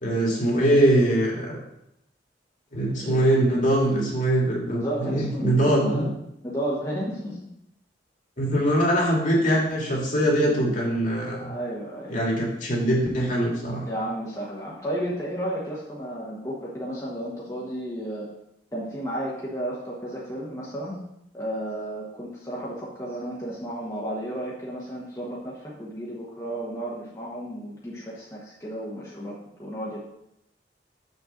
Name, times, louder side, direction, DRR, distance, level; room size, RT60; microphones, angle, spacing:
voice 1, 0.0-1.6 2.7-6.1 8.4-11.4 12.1-13.8, right 1 dB, 45° left, -2 dB, 2.2 m, -22 dB
voice 2, 3.0-3.3 4.7-6.0 6.4-7.4 11.3-12.2 13.8-18.3 18.7-21.0 21.3-30.0, right 1 dB, 20° left, -6 dB, 1.3 m, -33 dB
6.6 x 4.4 x 6.5 m, 0.81 s
head